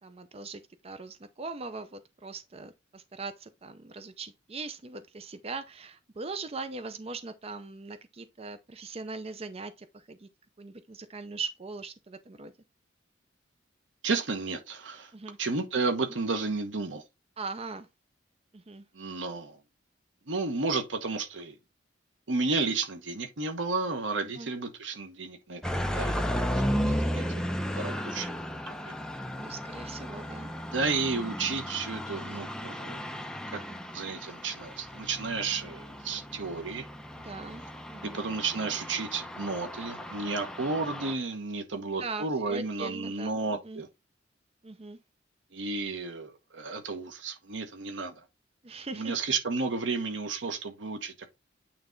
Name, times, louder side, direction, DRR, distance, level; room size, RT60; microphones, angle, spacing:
voice 1, 0.0-10.3 10.6-12.5 15.1-15.4 17.4-17.9 18.5-18.8 24.2-24.5 29.3-30.5 37.2-37.6 37.9-38.2 41.7-43.8 44.6-45.0 48.6-49.1, right 3 dB, 35° right, 0.5 m, -40 dB
voice 2, 14.0-15.1 15.4-17.0 18.9-19.6 20.3-21.5 22.3-26.2 26.9-27.5 27.7-28.4 28.8-28.9 30.7-33.1 33.5-36.9 38.1-43.9 45.5-48.1 48.9-51.4, right 4 dB, 90° right, 1.0 m, -32 dB
sound 1, 25.6-41.1, equal, 5° left, 0.6 m, -35 dB
8.8 x 3.4 x 3.8 m
head